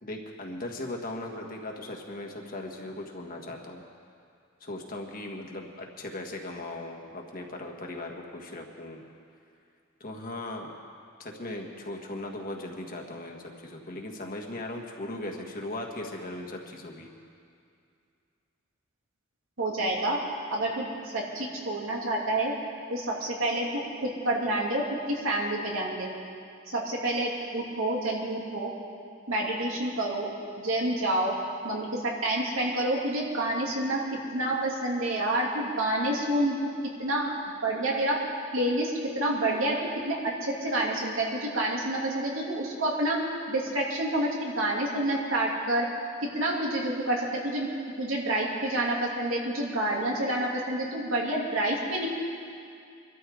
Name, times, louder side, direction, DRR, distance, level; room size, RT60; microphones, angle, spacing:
voice 1, 0.0-3.8 4.6-9.0 10.0-10.7 11.2-17.1, left 1 dB, 45° left, 1 dB, 1.6 m, -38 dB
voice 2, 19.6-20.2 20.5-22.5 22.9-26.1 26.7-28.7 29.3-30.3 30.6-31.3 31.6-34.0 34.3-36.6 37.0-37.2 37.6-38.2 38.5-43.2 43.5-45.8 46.3-47.7 48.0-52.1, right 1 dB, 85° right, -3 dB, 2.9 m, -28 dB
24.0 x 13.0 x 3.9 m, 2.4 s
head